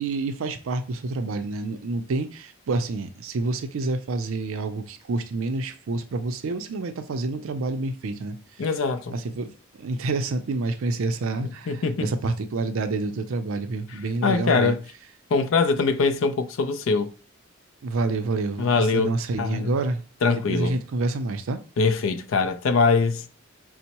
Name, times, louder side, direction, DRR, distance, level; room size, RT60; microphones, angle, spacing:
voice 1, 0.0-8.4 9.1-9.5 9.8-14.8 17.8-20.0 20.3-21.6, right 3 dB, 70° right, 0.4 m, -28 dB
voice 2, 8.6-9.2 11.7-12.1 14.2-14.8 15.3-17.1 18.6-19.1 19.4-19.8 20.2-20.8 21.8-23.3, left 4 dB, 65° left, 0.4 m, -22 dB
5.2 x 2.0 x 2.9 m
head